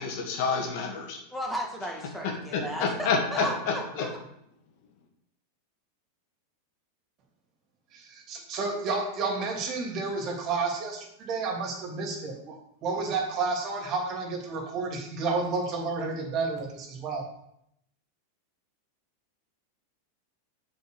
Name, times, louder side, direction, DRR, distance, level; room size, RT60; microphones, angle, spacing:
voice 1, 0.0-1.2 2.5-4.1, left 4 dB, 55° left, 1 dB, 2.2 m, -28 dB
voice 2, 1.3-4.2, equal, ahead, 0 dB, 2.3 m, -35 dB
voice 3, 7.9-17.3, right 4 dB, 40° right, 0 dB, 3.0 m, -31 dB
7.3 x 5.2 x 6.5 m, 0.76 s
hypercardioid pair, 95°, 0 cm